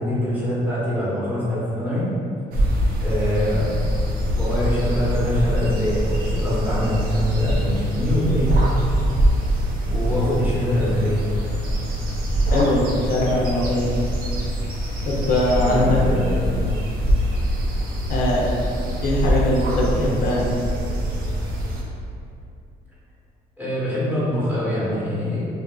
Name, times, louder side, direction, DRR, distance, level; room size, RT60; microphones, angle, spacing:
voice 1, 0.0-2.1 3.0-3.7 4.3-8.6 9.8-11.2 15.6-16.8 23.6-25.4, left 1 dB, 10° right, -9 dB, 0.8 m, -24 dB
sound 1, 2.5-21.8, equal, 60° right, 0.5 m, -24 dB
voice 2, 12.5-13.9 15.0-16.0 18.1-18.4 19.0-20.4, left 1 dB, 60° left, -4 dB, 0.5 m, -21 dB
2.6 x 2.4 x 2.2 m, 2.5 s
cardioid pair, 110°, 17 cm